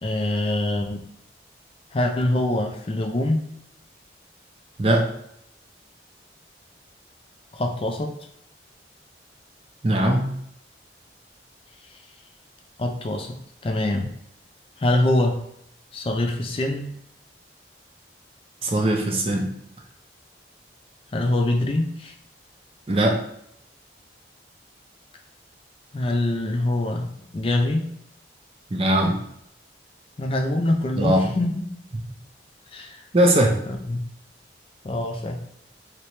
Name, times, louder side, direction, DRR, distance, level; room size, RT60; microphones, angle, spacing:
voice 1, 0.0-1.0 1.9-3.5 7.5-8.1 12.8-13.4 13.6-14.1 14.8-15.4 15.9-16.9 21.1-22.1 25.9-27.9 30.2-31.6 32.7-33.0 33.7-34.0 34.8-35.4, left 1 dB, 30° left, 3 dB, 0.3 m, -24 dB
voice 2, 4.8-5.1 9.8-10.4 18.6-19.5 22.9-23.2 28.7-29.2 31.0-31.3 33.1-33.6, right 1 dB, 30° right, 2 dB, 0.5 m, -20 dB
3.2 x 2.9 x 3.0 m, 0.73 s
head